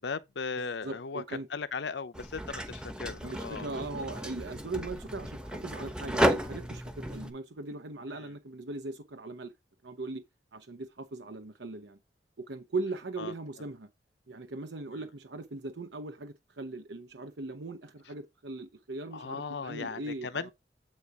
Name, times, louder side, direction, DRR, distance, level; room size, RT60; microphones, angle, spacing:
voice 1, 0.0-3.7 8.2-8.3 13.2-13.3 19.1-20.5, left 5 dB, 75° left, 0.7 m, -37 dB
voice 2, 0.8-1.5 3.2-9.5 9.8-10.2 10.5-12.0 12.4-13.9 14.3-20.5, right 2 dB, 75° right, 0.8 m, -39 dB
sound 1, 2.1-7.3, equal, 5° right, 0.9 m, -33 dB
8.0 x 4.2 x 4.6 m
head